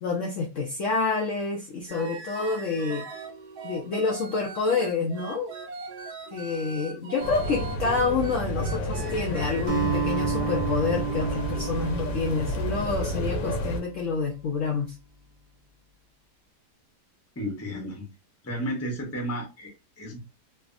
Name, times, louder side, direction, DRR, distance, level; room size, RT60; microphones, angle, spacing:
voice 1, 0.0-3.1 3.6-5.5 6.3-15.0, left 4 dB, 70° left, 1 dB, 0.7 m, -28 dB
sound 1, 1.9-9.6, right 4 dB, 75° right, 1.2 m, -39 dB
sound 2, 7.2-13.8, equal, 85° left, 1.3 m, -31 dB
Acoustic guitar, 9.7-14.1, right 6 dB, 40° right, 0.7 m, -32 dB
voice 2, 17.4-18.1 18.4-20.2, equal, 15° left, 0 dB, 0.5 m, -33 dB
3.3 x 2.1 x 2.4 m, 0.27 s
omnidirectional pair, 1.8 m